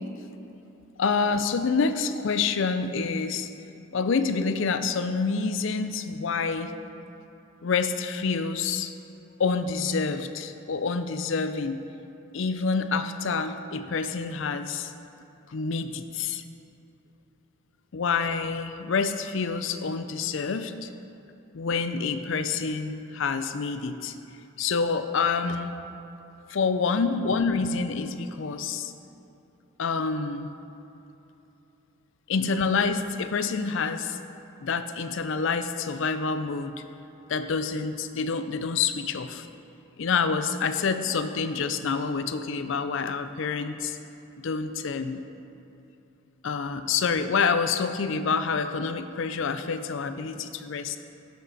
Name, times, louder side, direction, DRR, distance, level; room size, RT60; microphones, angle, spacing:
voice 1, 1.0-3.5 3.9-6.7 7.6-8.9 9.4-11.8 12.3-14.9 15.5-16.4 17.9-20.9 21.5-24.1 24.6-25.7 26.5-28.9 29.8-30.5 32.3-34.2 34.6-36.7 37.3-39.5 40.0-44.0 44.4-45.2 46.4-51.0, left 5 dB, 60° left, 9 dB, 0.4 m, -27 dB
12.0 x 6.6 x 4.0 m, 2.9 s
head